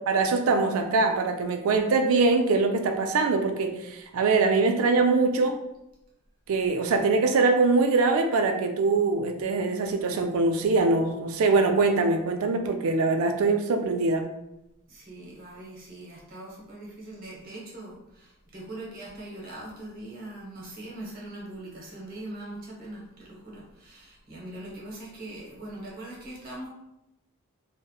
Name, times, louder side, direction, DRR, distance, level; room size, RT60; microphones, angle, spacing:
voice 1, 0.1-5.6 6.5-14.2, right 3 dB, 75° right, 6 dB, 0.3 m, -23 dB
voice 2, 14.9-26.7, right 1 dB, 45° right, -4 dB, 0.8 m, -41 dB
2.8 x 2.1 x 2.2 m, 0.87 s
head